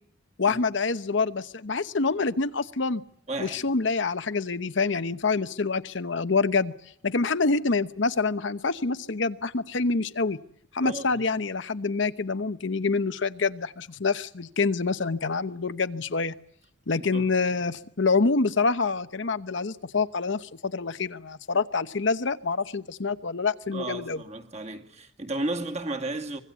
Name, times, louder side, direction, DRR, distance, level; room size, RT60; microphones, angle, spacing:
voice 1, 0.4-3.0 3.4-6.7 7.0-10.4 10.7-16.3 16.9-24.2, left 4 dB, 65° left, 0.9 m, -26 dB
voice 2, 3.3-3.6 10.8-11.2 17.0-17.3 23.7-26.4, right 2 dB, 30° right, 2.3 m, -33 dB
25.0 x 22.0 x 8.2 m
head